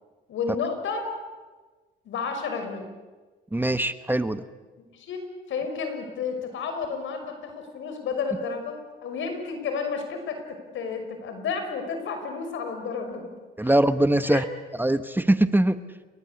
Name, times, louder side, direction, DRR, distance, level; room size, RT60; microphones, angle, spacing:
voice 1, 0.3-1.1 2.0-2.9 4.8-5.2 5.5-13.3 13.6-13.7 14.2-14.4, left 5 dB, 75° left, 6 dB, 5.9 m, -31 dB
voice 2, 3.5-4.4 13.6-14.4 14.8-15.8, right 1 dB, 10° right, 12 dB, 1.1 m, -22 dB
29.0 x 23.0 x 8.4 m, 1.3 s
cardioid pair, 90°, 20 cm